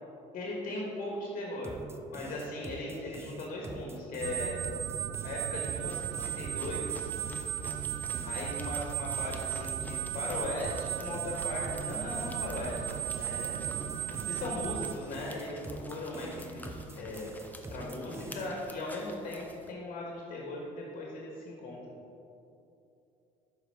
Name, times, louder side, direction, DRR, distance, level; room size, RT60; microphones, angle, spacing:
voice 1, 0.3-1.8 2.1-4.6 5.2-7.1 8.2-13.6 14.3-17.3 17.7-22.0, left 2 dB, 55° left, -2 dB, 1.7 m, -38 dB
sound 1, 1.6-18.7, right 2 dB, 15° right, 0.5 m, -45 dB
sound 2, 4.2-14.9, right 12 dB, 75° right, 0.4 m, -36 dB
sound 3, 5.7-19.7, left 1 dB, 10° left, 0.9 m, -51 dB
6.7 x 5.5 x 4.8 m, 2.8 s
supercardioid pair, 80°, 16 cm